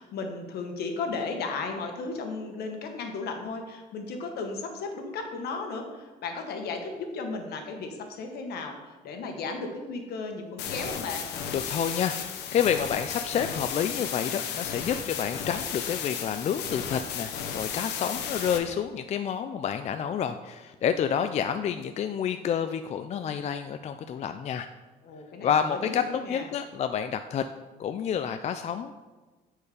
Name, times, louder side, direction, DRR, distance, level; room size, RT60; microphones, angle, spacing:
voice 1, 0.0-11.3 25.0-26.5, left 4 dB, 70° left, 4 dB, 1.3 m, -35 dB
sound 1, 10.6-18.6, left 7 dB, 85° left, 0.9 m, -34 dB
voice 2, 11.5-24.7 25.4-27.4 27.8-28.9, left 8 dB, 40° left, 8 dB, 0.4 m, -29 dB
8.6 x 4.5 x 4.9 m, 1.3 s
cardioid pair, 110°, 17 cm